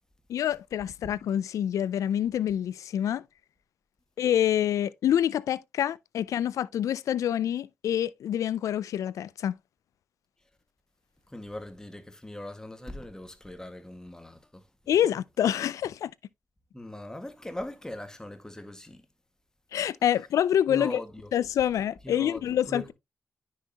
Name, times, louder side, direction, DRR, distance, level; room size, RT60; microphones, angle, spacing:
voice 1, 0.3-3.2 4.2-9.6 14.9-16.1 19.7-21.0 21.3-22.8, left 10 dB, 85° left, 0.4 m, -26 dB
voice 2, 11.3-14.6 16.7-19.0 20.7-21.3 22.0-22.9, left 1 dB, 10° left, 1.8 m, -40 dB
9.8 x 5.6 x 2.9 m
cardioid pair, 55°, 5 cm